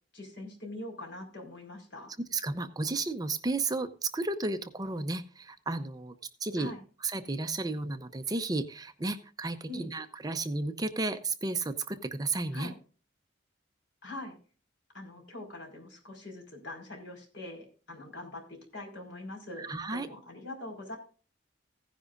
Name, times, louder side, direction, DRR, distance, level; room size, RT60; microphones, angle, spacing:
voice 1, 0.1-2.1 6.6-6.8 9.7-9.9 12.5-12.7 14.0-14.4 14.9-21.0, left 2 dB, 65° left, 2 dB, 4.9 m, -43 dB
voice 2, 2.3-6.2 6.4-6.7 7.0-12.7 19.6-20.1, right 3 dB, 20° right, 9 dB, 0.7 m, -33 dB
16.0 x 10.0 x 2.5 m, 0.37 s
head